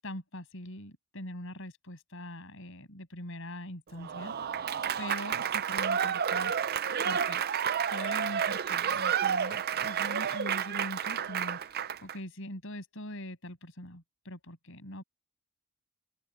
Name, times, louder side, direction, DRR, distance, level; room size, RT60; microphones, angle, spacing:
voice 1, 0.0-7.4 7.9-15.0, left 1 dB, 65° left, 7.9 m, -43 dB
Applause / Crowd, 4.0-12.2, right 8 dB, 45° right, 0.5 m, -30 dB
open air
head